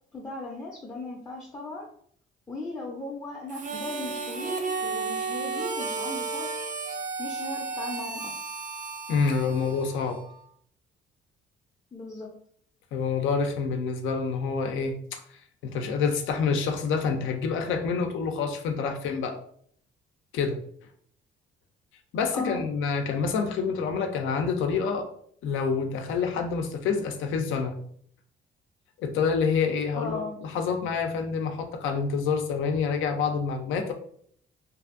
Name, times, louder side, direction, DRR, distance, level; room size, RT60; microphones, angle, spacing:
voice 1, 0.1-1.9 2.5-6.7 7.2-8.4 11.9-12.3 22.3-22.6 29.9-30.4, left 2 dB, 15° left, -2 dB, 0.5 m, -37 dB
Harmonica, 3.5-10.4, right 4 dB, 40° right, 0.4 m, -33 dB
voice 2, 9.1-10.2 12.9-15.2 15.6-19.4 20.3-20.6 22.1-25.1 25.4-27.7 29.0-33.9, left 5 dB, 80° left, 5 dB, 0.5 m, -27 dB
2.6 x 2.5 x 2.5 m, 0.63 s
cardioid pair, 100°, 20 cm